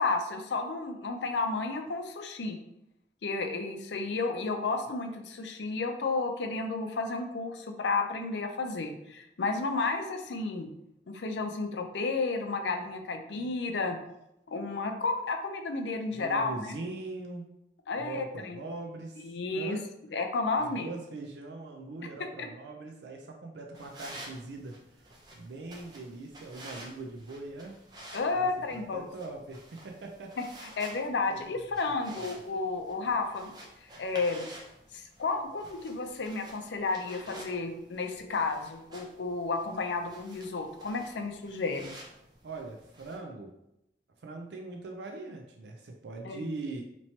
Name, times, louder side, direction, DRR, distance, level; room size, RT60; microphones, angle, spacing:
voice 1, 0.0-2.6 3.2-10.7 11.1-14.0 14.5-16.7 17.9-18.6 19.2-19.8 20.1-20.9 22.4-22.5 28.1-29.1 30.6-33.5 34.0-34.5 34.9-41.9 46.2-46.4, left 3 dB, 85° left, 5 dB, 0.5 m, -32 dB
voice 2, 16.1-17.5 18.0-19.8 20.6-24.8 25.3-27.8 28.3-30.4 31.3-31.5 32.1-32.2 42.4-43.5 44.2-46.8, right 3 dB, 80° right, 1 dB, 0.5 m, -41 dB
sound 1, 23.7-43.2, right 1 dB, 25° right, 0.6 m, -51 dB
3.0 x 2.8 x 4.3 m, 0.84 s
head